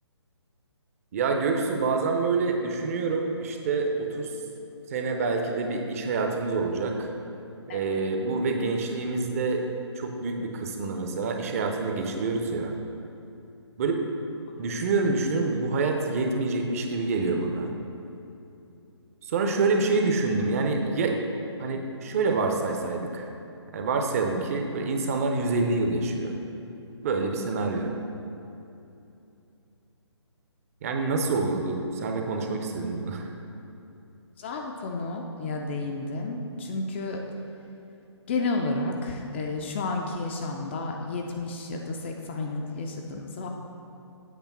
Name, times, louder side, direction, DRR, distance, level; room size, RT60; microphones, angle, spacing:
voice 1, 1.1-4.3 4.9-7.1 7.7-9.6 10.0-12.7 13.8-14.0 14.6-17.7 19.3-21.2 21.6-23.3 23.7-26.4 27.0-27.9 30.8-33.3, right 3 dB, 30° right, 3 dB, 0.6 m, -27 dB
voice 2, 34.4-37.2 38.3-43.5, left 3 dB, 25° left, 1 dB, 0.4 m, -31 dB
8.2 x 3.4 x 6.0 m, 2.8 s
figure-of-eight pair, 145°, 15 cm